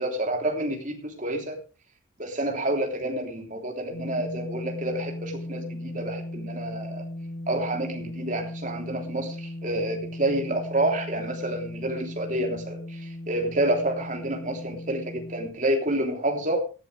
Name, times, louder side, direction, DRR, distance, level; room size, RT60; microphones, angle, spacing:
voice 1, 0.0-1.6 2.2-7.0 7.5-16.6, right 1 dB, 40° right, 2 dB, 3.3 m, -29 dB
sound 1, 3.9-15.5, left 1 dB, 60° left, 2.4 m, -37 dB
18.0 x 11.5 x 3.4 m, 0.33 s
head